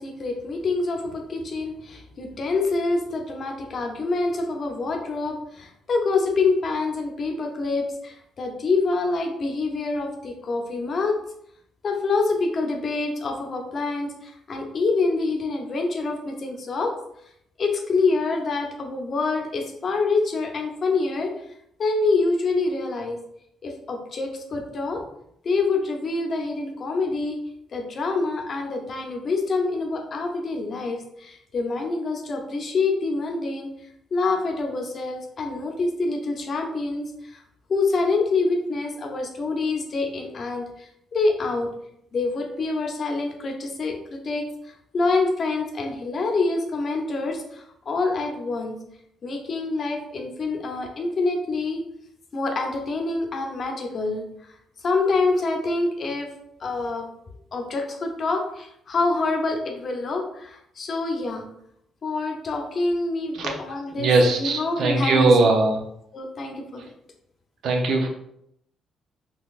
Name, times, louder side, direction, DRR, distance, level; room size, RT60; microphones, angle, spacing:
voice 1, 0.0-11.2 11.8-16.9 17.6-21.3 21.8-23.2 23.6-25.0 25.4-27.4 27.7-33.7 34.1-37.4 37.7-41.7 42.1-48.8 49.2-51.9 52.3-56.3 56.6-57.1 57.5-61.5 62.0-64.1 64.4-65.6 66.1-66.8, left 3 dB, 50° left, 3 dB, 0.7 m, -26 dB
voice 2, 63.9-65.8 67.6-68.1, right 3 dB, 75° right, 2 dB, 0.7 m, -20 dB
3.9 x 2.8 x 2.5 m, 0.74 s
cardioid pair, 90°, 0 cm